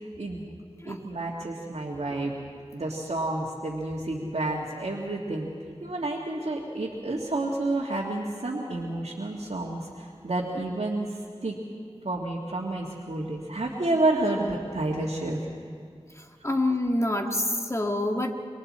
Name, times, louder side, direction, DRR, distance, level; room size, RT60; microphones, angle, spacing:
voice 1, 0.9-2.3 2.7-5.5 5.8-11.6 12.0-15.4, right 2 dB, 85° right, -3 dB, 1.9 m, -30 dB
voice 2, 16.4-18.3, left 1 dB, 25° left, 3 dB, 1.8 m, -26 dB
27.5 x 24.5 x 4.3 m, 2.3 s
wide cardioid pair, 50°, 11 cm